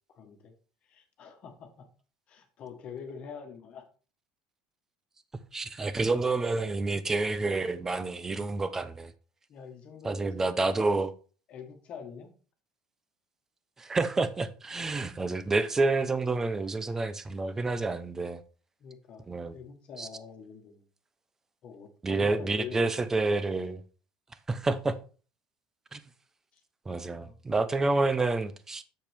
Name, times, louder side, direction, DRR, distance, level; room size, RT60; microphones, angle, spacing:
voice 1, 0.1-0.5 0.8-1.9 2.3-3.9 9.5-10.9 11.5-12.3 18.8-20.8 21.6-23.3 26.5-26.6 27.2-27.4, left 7 dB, 45° left, 1.4 m, -45 dB
voice 2, 5.5-9.1 10.0-11.1 13.8-18.4 19.3-19.5 20.0-20.1 22.0-23.8 24.5-25.0 25.9-26.0 26.9-28.8, right 3 dB, 15° right, 0.7 m, -28 dB
7.7 x 6.9 x 3.5 m
cardioid pair, 130°, 3 cm